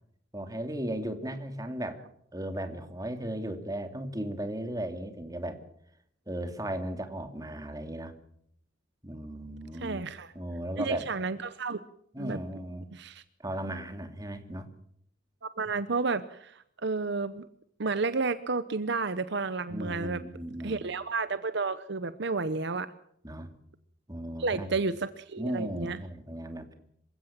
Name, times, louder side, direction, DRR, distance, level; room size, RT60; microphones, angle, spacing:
voice 1, 0.3-2.0 2.3-5.6 6.3-8.1 9.0-10.1 10.3-11.1 12.1-12.9 13.4-14.7 19.7-20.8 23.2-23.5 24.1-24.7 25.4-26.7, right 1 dB, 20° right, 7 dB, 2.7 m, -36 dB
voice 2, 9.8-10.3 10.8-11.8 12.2-12.4 12.9-13.2 15.4-17.4 17.8-20.2 20.6-22.9 24.4-26.0, right 4 dB, 60° right, 13 dB, 0.9 m, -31 dB
27.0 x 16.0 x 7.4 m, 0.70 s
head